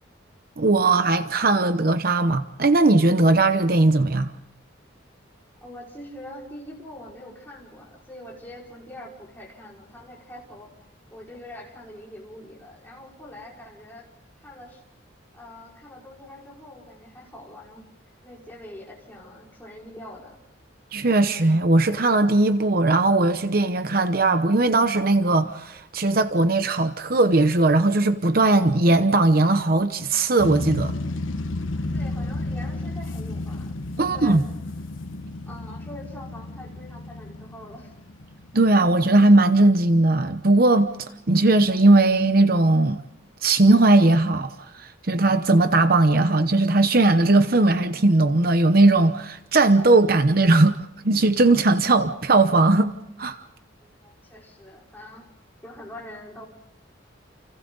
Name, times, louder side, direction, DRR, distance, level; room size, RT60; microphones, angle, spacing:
voice 1, 0.6-4.3 20.9-31.0 34.0-34.4 38.5-43.0 43.4-50.8 51.0-52.9 53.2-53.4, right 2 dB, 50° right, 0.9 m, -19 dB
voice 2, 5.6-10.7 11.1-14.1 14.4-14.8 15.3-17.8 18.2-20.4 31.9-34.4 35.5-37.9 53.8-55.3 55.6-56.5, left 1 dB, 10° left, 5.4 m, -43 dB
sound 1, 30.4-39.1, left 2 dB, 85° left, 1.3 m, -32 dB
29.5 x 29.0 x 4.0 m
head